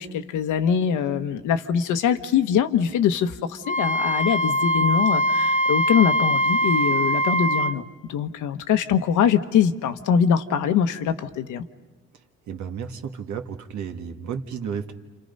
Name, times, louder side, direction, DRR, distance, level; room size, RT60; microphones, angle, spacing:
voice 1, 0.0-11.6, left 8 dB, 85° left, 9 dB, 1.2 m, -23 dB
Wind instrument woodwind instrument, 3.6-7.8, equal, 25° left, 1.2 m, -22 dB
voice 2, 12.5-14.9, right 7 dB, 70° right, 6 dB, 1.8 m, -32 dB
30.0 x 27.0 x 5.4 m, 1.2 s
cardioid pair, 90°, 30 cm